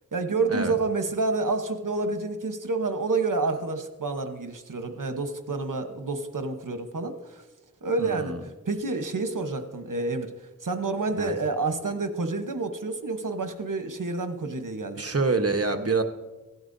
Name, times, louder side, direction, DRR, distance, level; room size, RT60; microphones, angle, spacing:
voice 1, 0.1-7.4 7.8-8.3 8.6-10.3 10.6-15.1, right 3 dB, 75° right, 7 dB, 1.1 m, -29 dB
voice 2, 8.0-8.4 11.2-11.3 14.9-16.0, right 3 dB, 50° right, 6 dB, 1.1 m, -26 dB
17.0 x 12.0 x 2.7 m, 1.1 s
wide cardioid pair, 40°, 32 cm